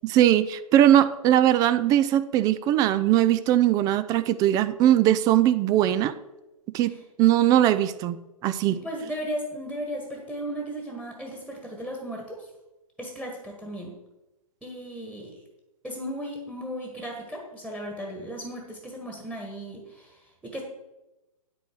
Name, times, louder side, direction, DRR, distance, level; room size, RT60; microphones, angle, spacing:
voice 1, 0.0-6.2 6.7-8.8, right 12 dB, 20° right, 13 dB, 0.4 m, -20 dB
voice 2, 8.7-12.5 13.0-13.9 14.6-15.4 15.8-20.6, equal, 5° right, 1 dB, 1.6 m, -36 dB
9.8 x 8.5 x 4.6 m, 0.99 s
hypercardioid pair, 130°, 19 cm